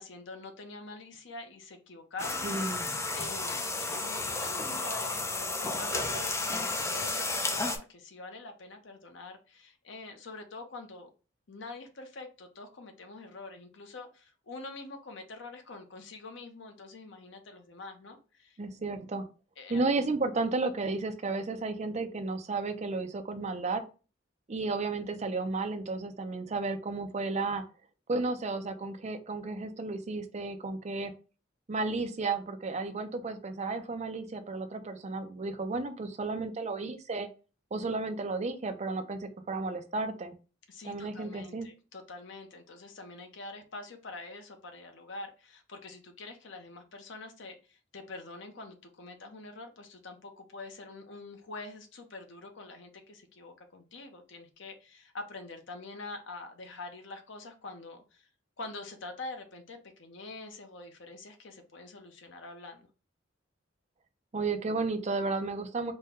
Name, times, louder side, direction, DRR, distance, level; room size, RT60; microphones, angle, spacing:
voice 1, 0.0-2.5 2.8-11.1 11.5-18.6 19.6-19.9 40.7-58.3 58.6-62.9, left 2 dB, 70° left, 5 dB, 0.7 m, -45 dB
sound 1, 2.2-7.8, left 3 dB, 15° left, 0.4 m, -32 dB
voice 2, 2.4-2.9 18.6-19.3 19.7-23.8 24.5-27.6 28.1-31.1 31.7-37.3 37.7-40.3 40.8-41.7 64.3-65.9, right 3 dB, 35° right, 7 dB, 0.5 m, -33 dB
4.2 x 2.2 x 3.6 m, 0.34 s
head